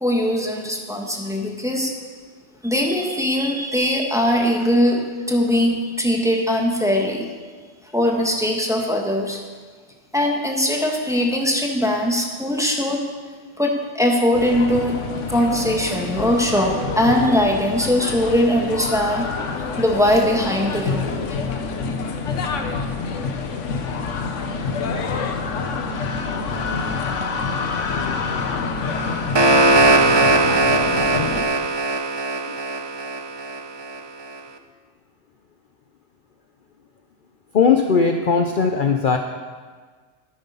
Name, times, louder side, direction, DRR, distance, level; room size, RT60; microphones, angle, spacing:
voice 1, 0.0-1.9 2.6-5.0 5.3-7.3 7.9-9.4 10.1-13.0 13.6-15.0 15.3-19.3 19.8-21.2, left 1 dB, 5° right, 0 dB, 1.4 m, -20 dB
sound 1, 14.3-31.4, left 4 dB, 85° left, 1.3 m, -27 dB
sound 2, 28.9-34.0, right 2 dB, 25° right, 0.6 m, -19 dB
voice 2, 37.5-39.2, left 5 dB, 50° left, 4 dB, 0.8 m, -18 dB
13.0 x 9.3 x 5.5 m, 1.5 s
omnidirectional pair, 1.2 m